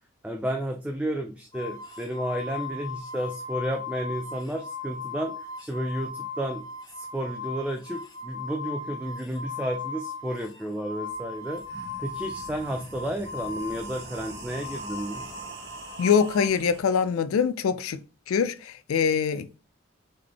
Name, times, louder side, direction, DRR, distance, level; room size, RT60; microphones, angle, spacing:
voice 1, 0.2-6.6 6.9-15.3, equal, 5° right, 0.3 m, -32 dB
sound 1, 1.5-16.5, left 3 dB, 20° left, 0.7 m, -38 dB
sound 2, 11.1-11.2 11.5-16.8, right 2 dB, 50° right, 1.1 m, -44 dB
voice 2, 16.0-18.0 18.3-19.5, left 6 dB, 90° left, 0.4 m, -24 dB
3.8 x 3.3 x 3.4 m
head